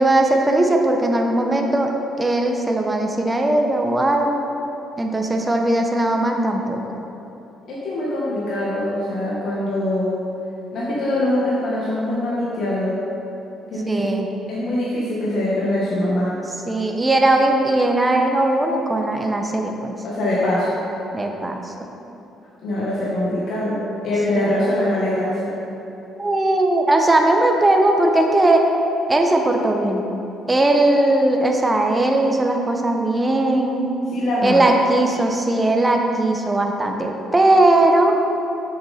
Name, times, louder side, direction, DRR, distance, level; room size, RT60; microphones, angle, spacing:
voice 1, 0.0-1.9 2.2-4.5 5.0-6.8 13.9-14.3 16.7-19.9 21.1-21.7 24.3-24.9 26.2-28.6 29.1-30.0 30.5-33.9 34.4-38.2, right 2 dB, 15° right, 2 dB, 0.7 m, -19 dB
voice 2, 7.7-10.2 10.7-13.0 13.7-14.1 14.5-16.3 20.0-20.7 22.6-23.8 24.0-25.5 34.1-34.7, left 1 dB, 65° left, -7 dB, 1.5 m, -23 dB
6.9 x 6.9 x 4.2 m, 2.9 s
cardioid pair, 110°, 0 cm